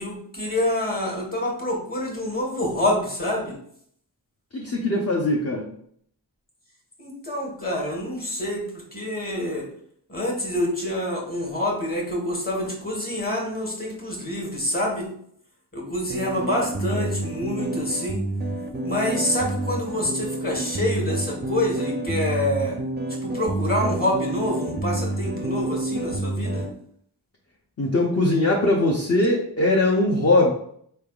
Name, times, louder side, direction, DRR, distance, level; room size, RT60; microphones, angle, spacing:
voice 1, 0.0-3.6 7.0-9.7 10.1-15.1 15.7-18.3 18.8-22.8 23.2-26.7, left 1 dB, 20° left, -1 dB, 1.3 m, -27 dB
voice 2, 4.5-5.7 27.8-30.5, left 2 dB, 35° left, -1 dB, 0.7 m, -21 dB
sound 1, 16.1-26.7, right 2 dB, 25° right, 0.4 m, -29 dB
4.3 x 3.3 x 2.3 m, 0.64 s
wide cardioid pair, 70°, 42 cm